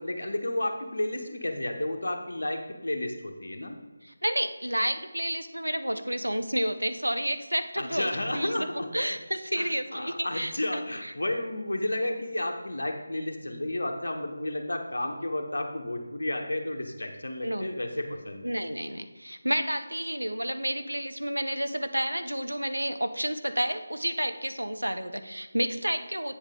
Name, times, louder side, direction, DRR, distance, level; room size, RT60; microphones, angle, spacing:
voice 1, 0.0-3.8 7.8-9.2 9.5-18.5, left 1 dB, 65° left, 4 dB, 1.4 m, -32 dB
voice 2, 4.0-8.7 8.9-11.1 17.4-17.7 18.4-26.4, equal, 85° right, 9 dB, 0.8 m, -30 dB
8.7 x 7.2 x 3.8 m, 1.2 s
figure-of-eight pair, 160°, 0 cm